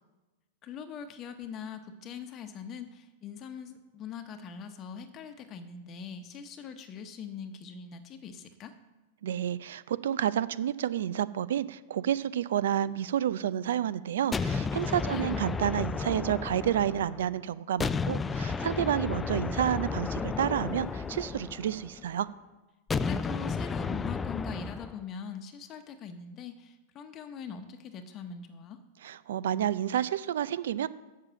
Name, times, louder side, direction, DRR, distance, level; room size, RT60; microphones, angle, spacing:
voice 1, 0.6-8.7 15.0-15.4 23.0-28.8, left 6 dB, 35° left, 8 dB, 0.9 m, -42 dB
voice 2, 9.2-22.3 29.0-30.9, right 10 dB, 75° right, 17 dB, 0.5 m, -30 dB
sound 1, 14.3-17.3 17.8-22.0 22.9-25.0, left 5 dB, 15° left, 0.3 m, -33 dB
7.5 x 6.8 x 7.5 m, 1.1 s
hypercardioid pair, 115°, 0 cm